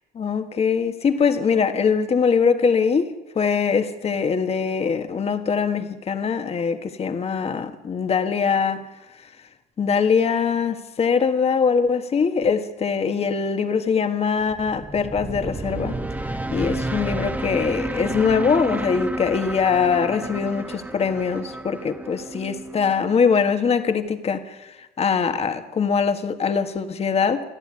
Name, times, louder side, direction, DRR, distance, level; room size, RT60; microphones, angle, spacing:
voice 1, 0.1-8.9 9.8-16.0 16.5-27.4, left 6 dB, 35° left, 8 dB, 1.7 m, -22 dB
sound 1, 14.4-23.5, right 2 dB, 10° right, 1.4 m, -31 dB
28.5 x 11.0 x 9.8 m, 1.0 s
cardioid pair, 110°, 17 cm